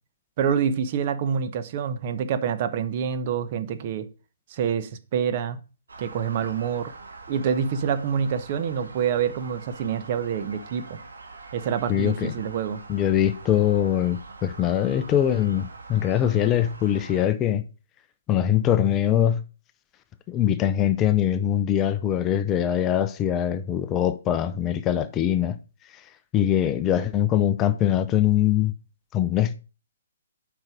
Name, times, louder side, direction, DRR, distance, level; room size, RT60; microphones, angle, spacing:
voice 1, 0.4-4.1 4.5-5.6 6.0-6.9 7.3-11.0 11.5-12.8, right 7 dB, 40° right, 0.9 m, -26 dB
sound 1, 5.9-17.2, right 4 dB, 80° right, 1.7 m, -44 dB
voice 2, 11.9-12.3 12.9-17.6 18.3-19.4 20.3-25.6 26.3-28.7 29.1-29.5, left 10 dB, 20° left, 0.6 m, -22 dB
8.1 x 5.4 x 4.9 m
figure-of-eight pair, 135°, 0 cm